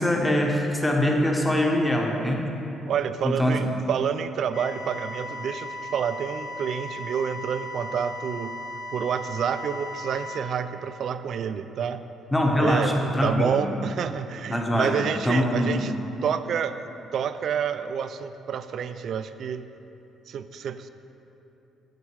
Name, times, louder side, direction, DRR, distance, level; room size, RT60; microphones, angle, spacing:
voice 1, 0.0-2.5 3.2-3.6 12.3-13.6 14.5-15.0 15.2-15.8, left 1 dB, 10° left, 0 dB, 1.1 m, -23 dB
voice 2, 2.9-8.6 8.9-12.0 12.6-15.9 16.2-16.9 17.1-19.7 20.3-20.9, right 7 dB, 55° right, 11 dB, 0.4 m, -29 dB
sound 1, 4.5-10.4, left 1 dB, 65° left, 1.0 m, -37 dB
9.1 x 7.5 x 4.7 m, 3.0 s
cardioid pair, 125°, 0 cm